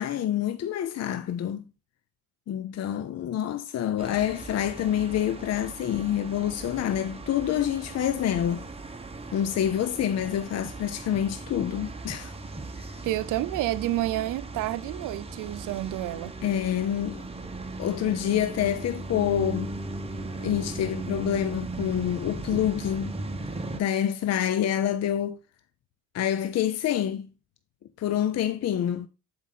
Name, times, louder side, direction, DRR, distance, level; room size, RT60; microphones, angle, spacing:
voice 1, 0.0-1.6 2.5-8.6 9.3-12.3 16.4-17.2 17.8-19.7 20.4-23.2 23.7-25.4 26.1-27.3 28.0-29.1, left 10 dB, 60° left, 0.6 m, -27 dB
sound 1, 4.0-23.8, right 2 dB, 20° right, 1.3 m, -38 dB
voice 2, 13.0-16.3, right 15 dB, 85° right, 0.6 m, -29 dB
7.4 x 4.8 x 4.1 m
cardioid pair, 90°, 30 cm